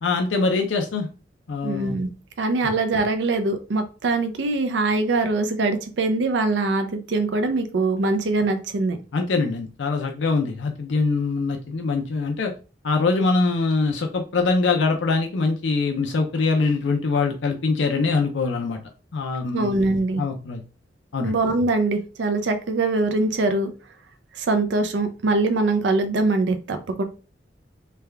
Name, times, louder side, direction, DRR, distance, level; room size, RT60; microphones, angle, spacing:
voice 1, 0.0-1.1 1.5-2.0 2.6-2.7 9.1-12.5 12.8-18.8 19.1-19.7 20.2-20.6 21.1-21.4, left 3 dB, 80° left, 3 dB, 0.5 m, -23 dB
voice 2, 1.6-2.1 2.4-9.0 19.5-20.2 21.2-23.7 24.4-27.0, right 3 dB, 70° right, 7 dB, 0.4 m, -23 dB
3.3 x 2.3 x 3.3 m, 0.34 s
head